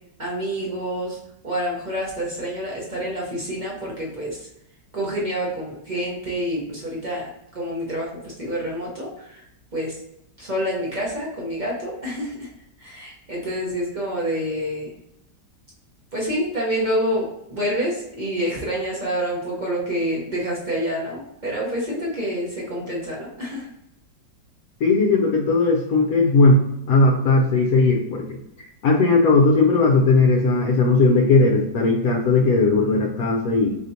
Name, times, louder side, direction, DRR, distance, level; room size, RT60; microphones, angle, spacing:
voice 1, 0.2-1.2 1.4-4.5 4.9-7.3 7.5-9.4 9.7-9.9 10.4-12.5 12.8-14.9 16.1-23.7, equal, 40° right, -5 dB, 0.6 m, -27 dB
voice 2, 24.8-26.6 26.9-28.4 28.8-33.8, left 3 dB, 70° left, -1 dB, 0.9 m, -17 dB
4.3 x 3.4 x 2.6 m, 0.83 s
omnidirectional pair, 1.9 m